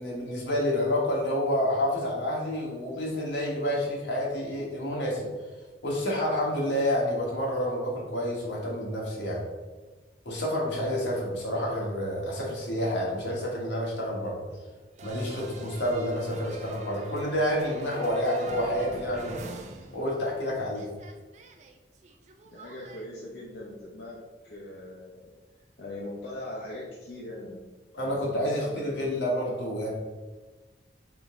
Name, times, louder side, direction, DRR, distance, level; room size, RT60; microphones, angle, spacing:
voice 1, 0.0-5.3 5.8-9.4 10.2-14.4 15.0-19.6 19.9-20.9 27.9-29.9, equal, 80° left, -3 dB, 1.3 m, -29 dB
sound 1, 15.0-20.4 20.7-23.0, right 3 dB, 40° right, 0.4 m, -43 dB
voice 2, 22.5-24.2 24.4-25.3 25.8-27.6 28.0-29.3, left 1 dB, 65° left, -6 dB, 0.7 m, -40 dB
3.8 x 3.5 x 3.6 m, 1.2 s
head